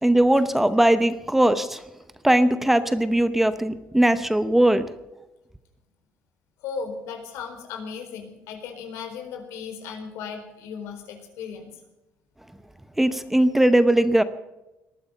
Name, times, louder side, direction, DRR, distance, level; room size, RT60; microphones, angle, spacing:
voice 1, 0.0-1.8 2.2-4.9 13.0-14.2, right 1 dB, 5° right, 12 dB, 0.8 m, -19 dB
voice 2, 6.6-11.8, left 6 dB, 85° left, 5 dB, 4.3 m, -36 dB
20.0 x 13.0 x 5.6 m, 0.99 s
cardioid pair, 160°, 5 cm